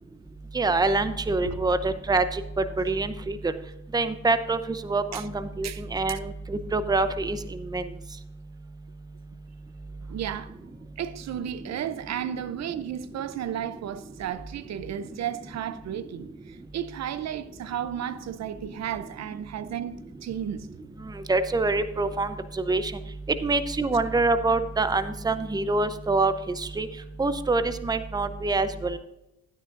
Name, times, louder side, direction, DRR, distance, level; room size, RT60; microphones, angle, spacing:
voice 1, 0.5-2.4 2.8-3.5 3.9-7.4 7.7-7.9 21.3-22.9 23.4-26.9 27.2-29.0, right 3 dB, 15° right, 0.7 m, -25 dB
voice 2, 10.1-10.6 11.0-20.7, right 9 dB, 60° right, 0.6 m, -33 dB
12.5 x 9.7 x 2.6 m
cardioid pair, 90°, 30 cm